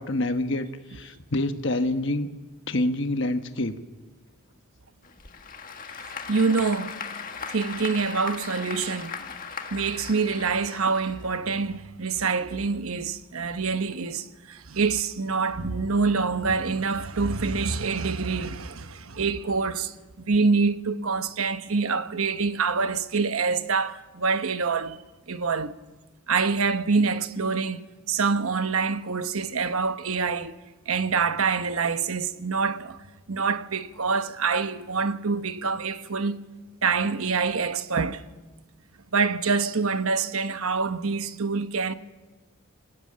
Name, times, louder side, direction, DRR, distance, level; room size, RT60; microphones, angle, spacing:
voice 1, 0.0-2.3 2.7-3.7, left 1 dB, 55° left, 1.2 m, -27 dB
Applause / Crowd, 5.0-11.6, left 5 dB, 40° left, 1.7 m, -38 dB
voice 2, 6.0-7.0 7.5-9.1 9.7-19.9 20.3-25.0 25.3-25.8 26.3-30.5 30.9-33.0 33.3-36.4 36.8-38.2 39.1-41.9, right 4 dB, 75° right, 1.0 m, -26 dB
21.0 x 19.0 x 8.8 m
head